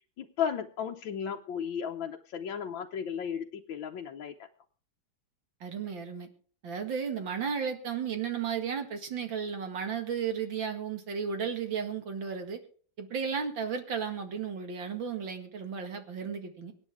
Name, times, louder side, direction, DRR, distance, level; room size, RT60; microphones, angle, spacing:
voice 1, 0.2-4.3, left 8 dB, 80° left, 2 dB, 1.6 m, -34 dB
voice 2, 5.6-6.3 6.6-12.6 13.0-16.7, right 6 dB, 75° right, 5 dB, 2.7 m, -34 dB
24.5 x 9.8 x 3.6 m, 0.43 s
omnidirectional pair, 2.1 m